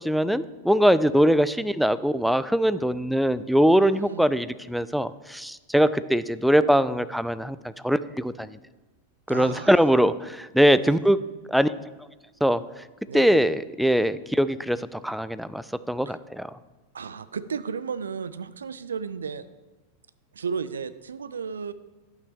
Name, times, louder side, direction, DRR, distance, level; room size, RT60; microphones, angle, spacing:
voice 1, 0.0-8.5 9.3-11.2 11.5-11.7 12.4-12.6 13.1-16.6, equal, ahead, 15 dB, 0.3 m, -22 dB
voice 2, 3.7-4.2 9.3-9.8 10.7-11.0 13.1-13.4 16.9-19.5 20.3-21.7, right 6 dB, 70° right, 15 dB, 0.4 m, -34 dB
11.5 x 9.0 x 3.4 m, 1.2 s
figure-of-eight pair, 90°, 0 cm